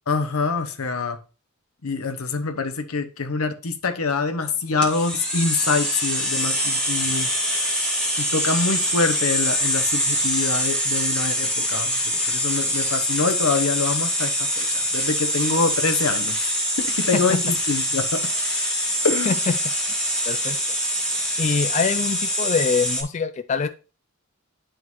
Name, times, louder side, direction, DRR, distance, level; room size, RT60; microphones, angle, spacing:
voice 1, 0.1-1.2 1.8-7.3 7.6-7.7 8.2-16.3 16.8-18.3 19.0-19.4, left 4 dB, 85° left, 0.9 m, -25 dB
sound 1, 4.8-23.0, equal, 5° left, 1.7 m, -24 dB
voice 2, 20.3-20.6 21.4-23.7, left 5 dB, 35° left, 0.3 m, -24 dB
10.5 x 3.8 x 3.0 m
head